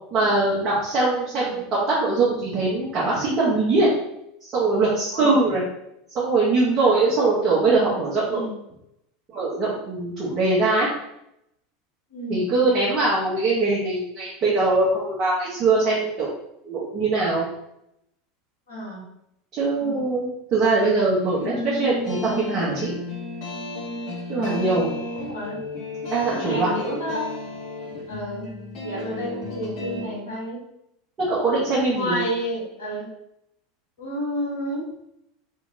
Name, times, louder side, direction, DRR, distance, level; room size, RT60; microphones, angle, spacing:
voice 1, 0.1-3.9 4.4-5.6 6.1-8.4 9.3-10.9 12.3-16.3 16.6-17.4 19.5-22.9 24.3-24.9 26.1-26.7 31.2-32.2, right 3 dB, 35° right, -7 dB, 0.9 m, -22 dB
voice 2, 12.1-12.6 18.7-19.0 19.8-20.0 24.3-24.7 25.1-25.6 26.2-27.2 28.1-28.5 28.8-30.6 31.9-33.1 34.0-34.8, equal, 70° left, -4 dB, 1.1 m, -30 dB
sound 1, 21.2-30.1, left 2 dB, 50° left, 0.9 m, -33 dB
3.0 x 2.7 x 2.6 m, 0.80 s
figure-of-eight pair, 80°, 0 cm